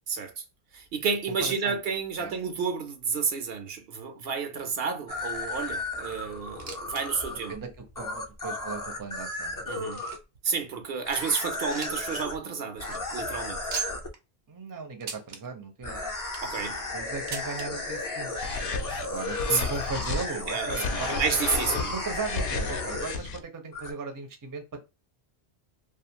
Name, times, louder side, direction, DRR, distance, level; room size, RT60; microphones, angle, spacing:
voice 1, 0.1-0.4 0.7-7.5 9.7-10.0 10.4-13.6 16.4-16.8 18.9-19.0 19.5-19.7 20.5-21.9, right 5 dB, 65° right, 0.8 m, -30 dB
voice 2, 1.3-1.8 2.2-2.3 7.5-9.6 14.5-16.0 16.9-18.3 19.0-21.2 21.8-24.8, right 4 dB, 25° right, 0.5 m, -37 dB
sound 1, 5.1-10.2 11.0-12.4 12.8-14.1 15.8-23.4 23.7-23.9, left 2 dB, 30° left, 0.4 m, -34 dB
sound 2, 6.4-7.0 7.3-7.4 8.1-8.2 8.9-10.4 10.8-10.9 11.1-12.2 12.5-12.6 12.8-13.0 13.7-14.2 15.0-15.4 16.0-16.6 17.3-17.7 18.6-18.7 18.9-19.0 19.8-19.9, right 6 dB, 90° right, 1.0 m, -38 dB
sound 3, 18.3-20.2 20.7-23.4, left 4 dB, 65° left, 0.7 m, -33 dB
2.4 x 2.4 x 2.8 m
omnidirectional pair, 1.1 m